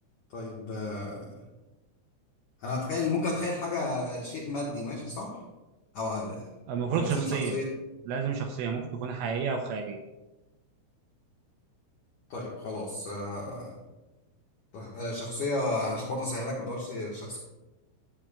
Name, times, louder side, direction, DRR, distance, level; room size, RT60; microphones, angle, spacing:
voice 1, 0.3-1.3 2.6-5.4 5.9-6.5 6.9-7.7 12.3-13.8 14.7-17.4, left 2 dB, 80° left, -3 dB, 1.8 m, -32 dB
voice 2, 6.7-7.6 8.1-10.0, right 6 dB, 80° right, 3 dB, 2.7 m, -30 dB
15.0 x 8.6 x 2.3 m, 1.1 s
omnidirectional pair, 5.8 m